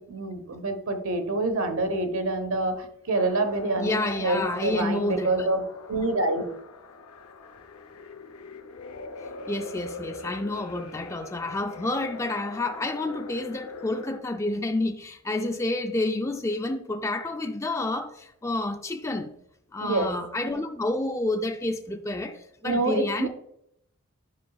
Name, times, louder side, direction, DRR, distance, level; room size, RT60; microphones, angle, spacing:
voice 1, 0.1-5.6 5.9-6.4 19.8-20.1 22.6-23.3, right 2 dB, 70° right, 1.0 m, -27 dB
sound 1, 3.1-14.2, left 3 dB, 80° left, 0.6 m, -42 dB
voice 2, 3.8-5.5 9.5-19.3 19.7-23.3, left 2 dB, 15° left, 0.3 m, -29 dB
9.9 x 5.7 x 2.3 m
head